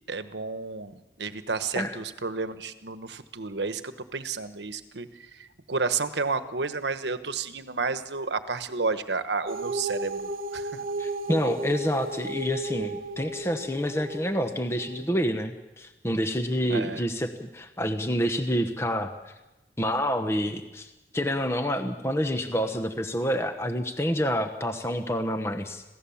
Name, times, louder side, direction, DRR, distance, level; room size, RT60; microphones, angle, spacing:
voice 1, 0.1-10.8 16.7-17.0, right 4 dB, 85° right, 11 dB, 1.2 m, -31 dB
sound 1, 9.5-15.0, right 2 dB, 50° right, 1.0 m, -34 dB
voice 2, 11.0-19.1 19.8-25.8, equal, 15° left, 7 dB, 1.0 m, -28 dB
27.0 x 16.5 x 7.2 m, 1.1 s
head